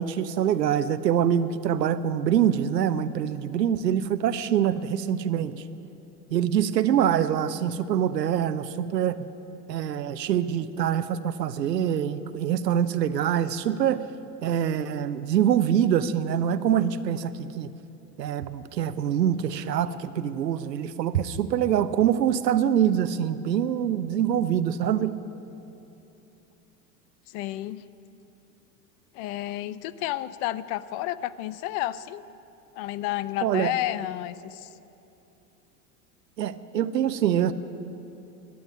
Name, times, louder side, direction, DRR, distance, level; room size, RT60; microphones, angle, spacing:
voice 1, 0.0-5.6 6.3-9.3 9.7-14.0 14.4-17.7 18.2-25.2 33.4-33.7 36.4-37.5, right 9 dB, 90° right, 14 dB, 0.7 m, -25 dB
voice 2, 27.3-27.9 29.1-32.2 32.8-34.7, left 14 dB, 50° left, 16 dB, 0.6 m, -31 dB
12.0 x 9.4 x 9.4 m, 2.9 s
hypercardioid pair, 90°, 48 cm